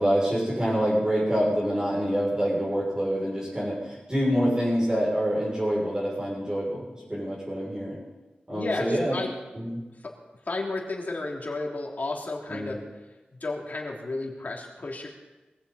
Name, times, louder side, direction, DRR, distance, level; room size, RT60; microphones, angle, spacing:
voice 1, 0.0-8.0 8.5-9.2 9.5-9.8 12.5-12.8, equal, 25° right, -8 dB, 7.0 m, -26 dB
voice 2, 8.5-9.3 10.0-10.1 10.4-15.1, left 2 dB, 55° left, -1 dB, 3.4 m, -33 dB
21.5 x 15.5 x 4.3 m, 1.1 s
wide cardioid pair, 95°, 3 cm